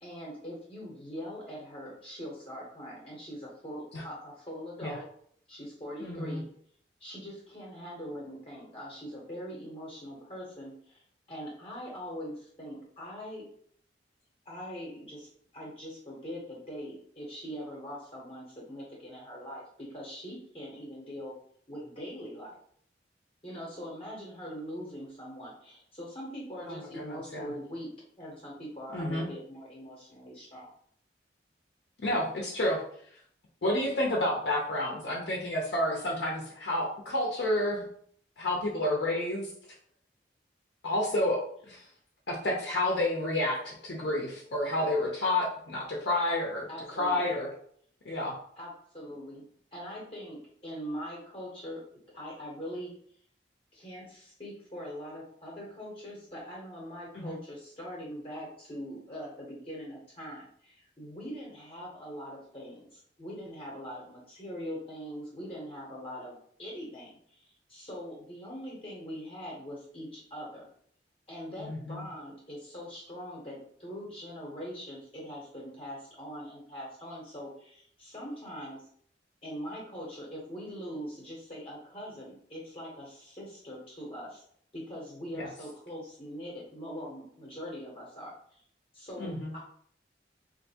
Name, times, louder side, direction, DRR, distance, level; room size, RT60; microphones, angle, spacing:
voice 1, 0.0-5.0 5.5-6.5 7.0-11.0 11.3-13.4 14.4-21.3 21.7-22.5 23.4-27.9 28.2-30.7 46.7-47.4 48.5-49.4 49.7-51.8 52.1-52.9 53.7-70.7 71.3-78.9 79.4-84.4 84.7-88.6 88.9-89.6, equal, 30° left, -4 dB, 0.8 m, -42 dB
voice 2, 6.0-6.4 26.7-27.5 28.9-29.3 32.0-32.8 33.6-37.8 38.4-39.5 40.8-41.9 42.3-46.7 47.0-47.5 48.0-48.4 57.1-57.4 71.6-72.1 85.3-85.5 89.2-89.5, left 1 dB, 65° left, -2 dB, 0.6 m, -30 dB
3.4 x 2.6 x 2.7 m, 0.63 s
head